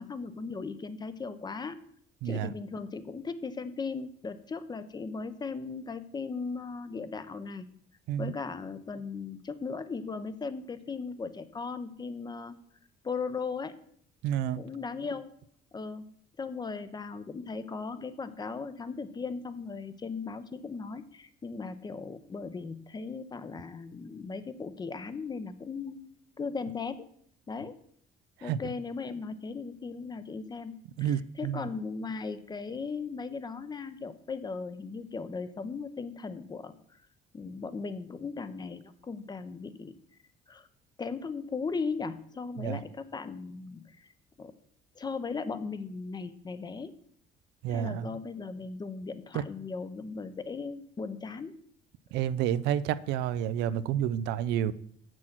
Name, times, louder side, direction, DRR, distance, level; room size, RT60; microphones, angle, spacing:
voice 1, 0.0-1.8 2.2-7.7 8.2-12.6 13.0-13.8 14.6-15.3 15.7-16.1 16.4-26.0 26.4-27.0 27.5-27.8 28.4-36.7 37.3-39.9 40.5-40.7 41.0-44.1 44.4-44.5 45.0-46.9 47.7-51.6, left 4 dB, 25° left, 0.7 m, -37 dB
voice 2, 14.2-14.6 28.5-28.6 31.0-31.6 42.6-42.8 47.6-48.0 52.1-54.7, right 10 dB, 90° right, 0.4 m, -29 dB
7.6 x 6.3 x 5.9 m
cardioid pair, 110°, 17 cm